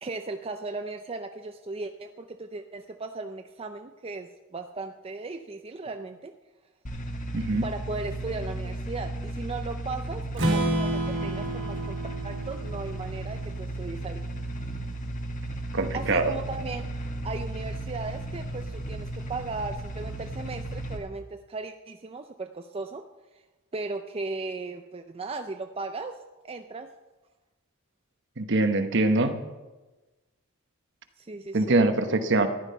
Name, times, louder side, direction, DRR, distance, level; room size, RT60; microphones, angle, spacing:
voice 1, 0.0-6.3 7.5-12.0 12.2-14.2 15.9-16.9 17.2-23.0 23.7-26.2 26.4-26.9 31.2-31.8, right 3 dB, 25° right, 6 dB, 0.5 m, -37 dB
sound 1, 6.9-21.0, right 1 dB, 40° left, 1.3 m, -35 dB
voice 2, 7.3-7.6 15.7-16.3 28.4-29.4 31.5-32.5, right 2 dB, 60° right, 8 dB, 1.1 m, -23 dB
Strum, 10.3-14.3, right 1 dB, 85° right, 3.8 m, -30 dB
14.0 x 10.5 x 5.5 m, 1.2 s
head